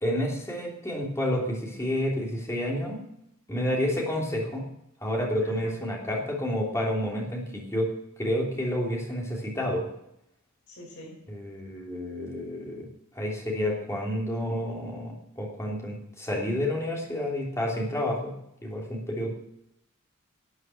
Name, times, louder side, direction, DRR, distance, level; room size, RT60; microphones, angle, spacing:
voice 1, 0.0-3.0 3.5-4.7 5.0-7.9 8.2-9.9 11.3-12.9 13.1-18.3 18.6-19.3, left 1 dB, 15° left, -2 dB, 3.0 m, -29 dB
voice 2, 5.4-5.9 10.7-11.2, equal, 55° left, -3 dB, 5.3 m, -46 dB
12.5 x 8.0 x 7.7 m, 0.80 s
head